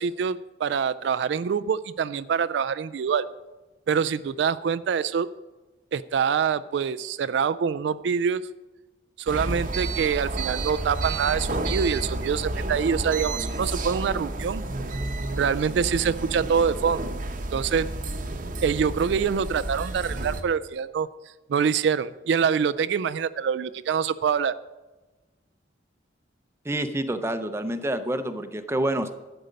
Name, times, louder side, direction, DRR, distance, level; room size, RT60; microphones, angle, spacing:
voice 1, 0.0-3.3 3.9-5.3 5.9-8.4 9.2-14.6 15.3-17.0 17.5-17.9 18.6-21.1 21.5-24.5, right 6 dB, 70° right, 15 dB, 0.3 m, -25 dB
sound 1, 9.3-20.4, right 2 dB, 45° right, 0.8 m, -31 dB
voice 2, 26.7-29.1, right 1 dB, 15° right, 8 dB, 0.6 m, -27 dB
12.0 x 7.9 x 5.2 m, 1.2 s
head